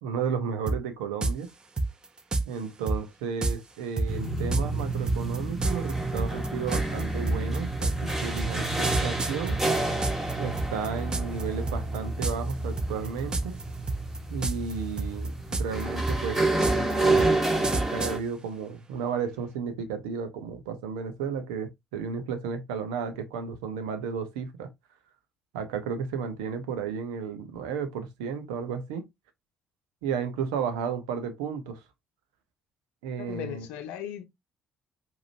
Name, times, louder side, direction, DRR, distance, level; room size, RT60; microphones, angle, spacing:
voice 1, 0.0-1.5 2.5-9.6 10.4-13.6 14.3-24.7 25.5-29.1 30.0-31.8 33.0-33.7, right 6 dB, 80° right, 1.0 m, -33 dB
sound 1, 0.7-0.8 1.2-1.4 1.8-2.5 2.9-3.0 3.4-3.6 4.0-10.3 10.6-11.4 11.7-12.0 12.2-12.5 12.8-13.6 13.9-14.7 15.0-18.2, right 2 dB, 30° right, 0.9 m, -28 dB
sound 2, 4.1-18.2, right 2 dB, 15° right, 1.6 m, -29 dB
voice 2, 33.2-34.2, left 10 dB, 75° left, 0.7 m, -37 dB
5.0 x 3.0 x 2.7 m
hypercardioid pair, 50°, 3 cm